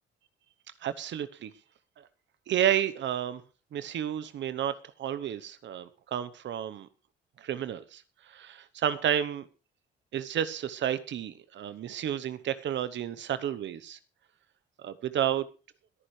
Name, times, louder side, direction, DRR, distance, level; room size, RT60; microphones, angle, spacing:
voice 1, 0.8-1.5 2.5-3.4 3.7-6.9 7.4-8.0 8.3-9.5 10.1-14.0 14.8-15.5, right 10 dB, 65° right, 1.0 m, -31 dB
21.0 x 10.0 x 3.3 m
cardioid pair, 90°, 20 cm